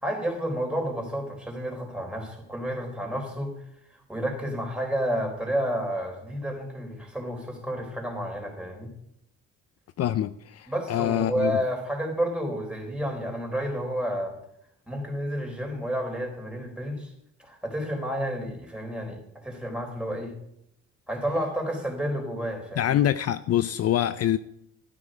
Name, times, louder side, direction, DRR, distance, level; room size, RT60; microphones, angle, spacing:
voice 1, 0.0-3.5 4.1-8.9 10.7-14.3 14.9-17.1 17.4-20.3 21.1-23.0, equal, 5° right, 4.1 m, -30 dB
voice 2, 10.0-11.6 22.8-24.4, left 11 dB, 55° left, 0.5 m, -25 dB
12.5 x 9.7 x 5.0 m
cardioid pair, 90°, 30 cm